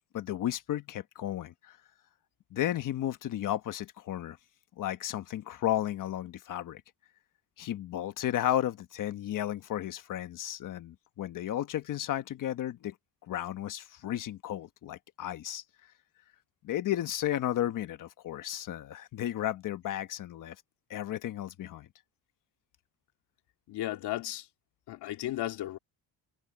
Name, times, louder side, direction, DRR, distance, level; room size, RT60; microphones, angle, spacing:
voice 1, 0.1-1.8 2.5-4.4 4.8-6.8 7.6-12.9 13.3-15.6 16.6-20.5 20.9-21.9, left 12 dB, 45° left, 1.3 m, -33 dB
voice 2, 23.7-24.5 24.9-25.8, left 15 dB, 65° left, 2.4 m, -34 dB
cardioid pair, 170°, 42 cm